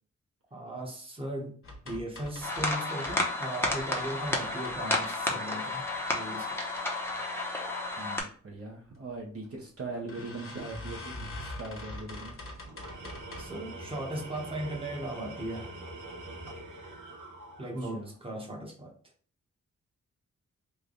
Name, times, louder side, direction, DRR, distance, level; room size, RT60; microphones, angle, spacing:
voice 1, 0.5-1.6 1.8-6.6 13.4-15.7 17.6-18.9, right 1 dB, 20° right, -1 dB, 1.0 m, -37 dB
sound 1, 1.6-3.2 3.6-5.2 5.7-6.3 6.7-7.2 7.4-7.5 7.8-7.9 8.9-9.1 9.4-9.5 10.1-13.6 14.1-14.5 15.0-15.1 15.4-15.5, left 1 dB, 45° left, 1.0 m, -44 dB
sound 2, 2.4-8.2, left 2 dB, 10° left, 0.7 m, -32 dB
voice 2, 8.0-12.3 17.8-18.1, right 3 dB, 50° right, -1 dB, 0.9 m, -41 dB
Tools, 12.7-18.0, right 2 dB, 75° right, 1.0 m, -44 dB
3.3 x 2.2 x 3.8 m, 0.44 s
wide cardioid pair, 110°, 30 cm